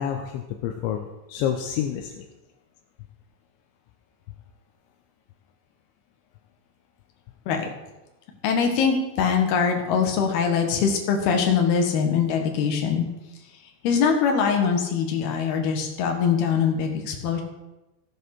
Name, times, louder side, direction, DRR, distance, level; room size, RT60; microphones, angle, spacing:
voice 1, 0.0-2.3, left 9 dB, 80° left, 4 dB, 3.1 m, -29 dB
voice 2, 8.4-13.1 13.8-17.4, left 6 dB, 60° left, 3 dB, 3.4 m, -22 dB
15.0 x 8.3 x 6.1 m, 1.0 s
omnidirectional pair, 5.5 m